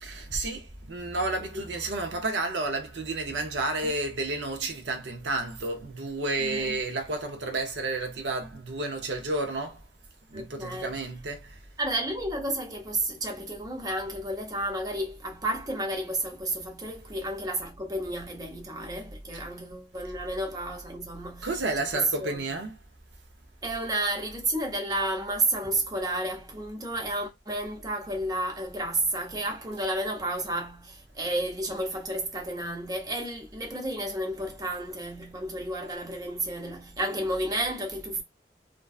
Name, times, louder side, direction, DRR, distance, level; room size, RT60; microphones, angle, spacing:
voice 1, 0.0-9.8 10.3-11.4 21.4-22.7, right 2 dB, 75° right, 0.6 m, -31 dB
voice 2, 6.4-6.8 10.3-10.9 11.8-21.5 21.9-22.4 23.6-38.2, right 1 dB, 20° right, 0.6 m, -31 dB
2.5 x 2.2 x 2.3 m
head